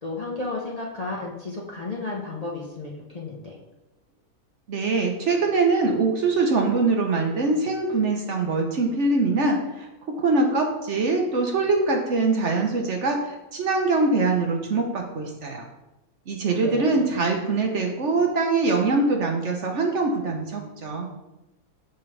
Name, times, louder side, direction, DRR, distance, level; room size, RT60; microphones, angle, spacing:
voice 1, 0.0-3.6 16.5-17.1, left 3 dB, 30° left, -3 dB, 0.8 m, -33 dB
voice 2, 4.7-9.9 10.2-15.6 16.3-21.1, right 3 dB, 55° right, 2 dB, 1.1 m, -23 dB
6.9 x 5.3 x 3.3 m, 0.97 s
omnidirectional pair, 1.6 m